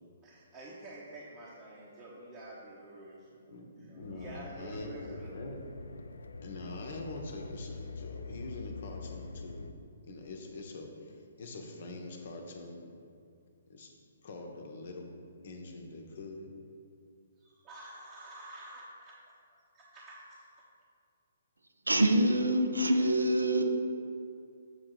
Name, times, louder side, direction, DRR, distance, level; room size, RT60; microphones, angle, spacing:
voice 1, 0.2-5.5 17.7-19.1 19.9-20.0 20.3-20.4, right 1 dB, 20° right, -7 dB, 1.0 m, -48 dB
voice 2, 3.5-5.6 6.4-9.7 10.1-12.9 13.7-13.9 14.2-15.2 15.4-16.5, left 2 dB, 50° left, 2 dB, 1.0 m, -44 dB
sound 1, 4.0-9.7, left 4 dB, 70° left, 0.3 m, -45 dB
voice 3, 21.9-23.6, right 1 dB, 75° right, 5 dB, 0.6 m, -25 dB
7.0 x 3.7 x 6.3 m, 2.4 s
figure-of-eight pair, 125°, 0 cm